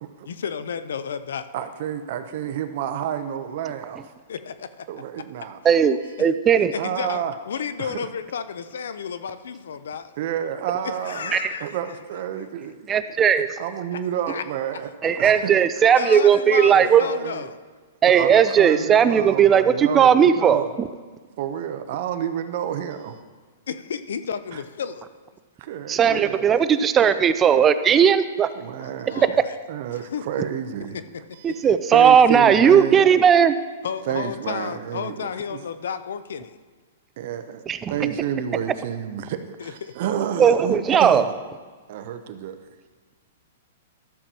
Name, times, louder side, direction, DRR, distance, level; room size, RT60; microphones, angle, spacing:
voice 1, 0.3-1.5 4.3-4.9 6.7-10.0 10.8-11.8 14.3-14.4 14.7-14.8 15.9-17.6 23.7-25.1 28.8-29.6 30.1-30.2 30.9-31.0 31.5-31.6 33.8-36.6 39.6-39.9, left 7 dB, 80° left, 12 dB, 0.5 m, -32 dB
voice 2, 1.5-4.1 4.9-5.6 6.8-7.3 7.8-8.1 10.2-12.7 13.4-14.9 15.2-15.5 16.6-17.5 18.1-20.8 21.4-23.2 24.5-24.6 25.6-26.5 28.5-29.4 29.7-31.0 31.4-33.0 34.1-35.6 37.2-37.6 37.9-41.4 41.9-42.6, right 9 dB, 50° right, 9 dB, 0.7 m, -30 dB
voice 3, 5.6-6.7 11.3-11.5 12.9-13.5 15.0-17.0 18.0-20.9 25.9-28.5 29.2-29.3 31.4-33.6 37.7-37.9 40.4-41.3, right 8 dB, 20° right, 12 dB, 0.4 m, -17 dB
13.5 x 6.8 x 2.9 m, 1.4 s
hypercardioid pair, 150°, 0 cm